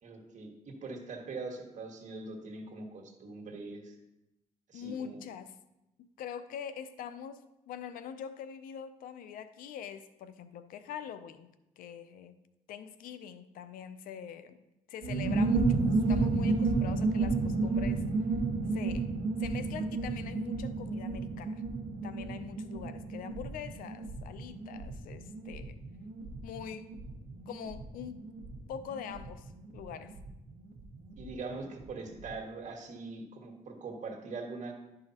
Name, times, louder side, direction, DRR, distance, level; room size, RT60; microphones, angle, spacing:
voice 1, 0.0-3.9 4.7-5.2 31.2-34.7, right 3 dB, 60° right, 2 dB, 1.4 m, -42 dB
voice 2, 4.7-5.5 6.0-11.5 11.8-12.3 12.7-14.6 14.9-18.1 18.7-19.1 19.4-21.6 22.0-25.8 26.4-26.9 27.5-28.2 28.7-30.2, left 8 dB, 90° left, 12 dB, 0.5 m, -43 dB
sound 1, 15.0-31.3 31.6-31.7 31.9-32.3, right 3 dB, 90° right, 1.1 m, -32 dB
11.0 x 4.9 x 2.9 m, 0.92 s
cardioid pair, 80°, 14 cm